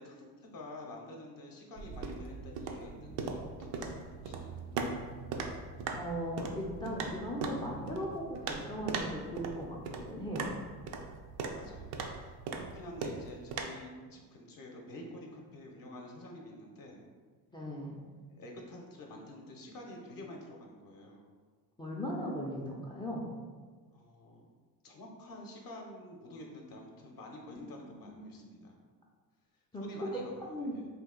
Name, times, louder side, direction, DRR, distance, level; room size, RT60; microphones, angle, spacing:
voice 1, 0.0-4.7 11.5-17.1 18.3-21.3 23.9-24.5 24.8-28.8 29.5-30.9, left 1 dB, 45° left, 0 dB, 0.7 m, -49 dB
sound 1, 1.8-13.6, right 4 dB, 85° right, 0.5 m, -40 dB
voice 2, 5.9-10.5 17.5-18.0 21.8-23.3 27.9-28.5 29.7-30.2 30.5-30.7, equal, 10° left, -2 dB, 0.3 m, -38 dB
2.8 x 2.3 x 3.6 m, 1.5 s
supercardioid pair, 85°, 47 cm